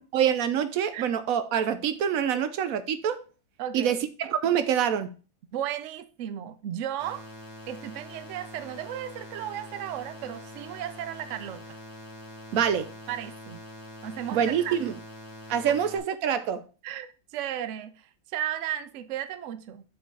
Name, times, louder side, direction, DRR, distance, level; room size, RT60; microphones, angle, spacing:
voice 1, 0.1-3.2 3.7-5.1 12.5-12.9 14.3-14.9 15.5-16.6, right 8 dB, 65° right, 0.9 m, -26 dB
voice 2, 3.6-4.0 5.5-7.3 7.7-11.8 13.1-13.6 14.0-14.8 15.7-15.8 16.8-19.8, right 11 dB, 85° right, 0.6 m, -35 dB
sound 1, 7.0-16.0, left 1 dB, 55° left, 2.2 m, -44 dB
7.3 x 4.4 x 4.5 m
omnidirectional pair, 1.9 m